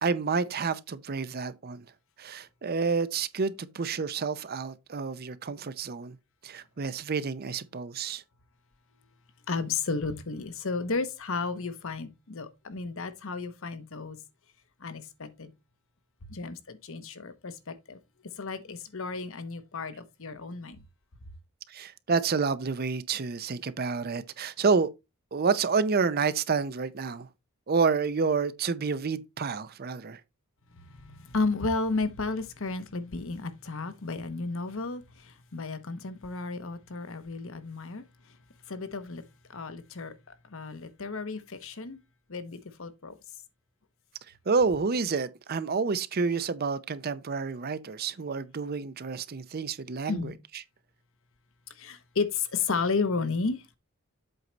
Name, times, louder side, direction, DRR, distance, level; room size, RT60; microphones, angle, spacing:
voice 1, 0.0-1.8 2.2-6.2 6.4-8.2 21.7-24.9 25.3-27.3 27.7-30.2 44.5-50.3, right 5 dB, 45° right, 0.6 m, -29 dB
voice 2, 9.5-14.2 14.8-15.5 16.3-18.0 18.4-20.8 30.8-38.0 38.7-39.2 39.5-40.1 40.5-42.0 42.3-43.2 50.1-50.3 51.8-53.8, left 4 dB, 60° left, 1.0 m, -33 dB
7.9 x 4.6 x 4.0 m
head